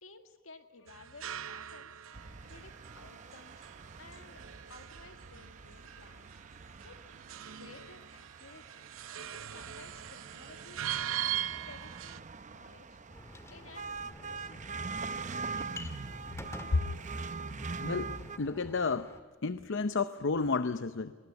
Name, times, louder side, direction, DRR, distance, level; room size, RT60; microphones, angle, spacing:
voice 1, 0.0-2.0 2.5-3.7 4.0-4.4 4.7-6.4 6.8-7.1 7.5-8.9 9.3-10.9 11.3-12.2 12.5-13.0 13.5-14.9, left 3 dB, 80° left, 7 dB, 2.1 m, -55 dB
sound 1, 0.9-12.2, right 11 dB, 80° right, 0.7 m, -41 dB
sound 2, 2.1-18.4, right 4 dB, 35° right, 0.7 m, -43 dB
sound 3, 13.1-19.2, left 1 dB, 15° left, 1.7 m, -49 dB
voice 2, 17.8-19.1 19.4-21.2, left 4 dB, 65° left, 12 dB, 0.7 m, -31 dB
22.5 x 20.0 x 9.4 m, 1.5 s
head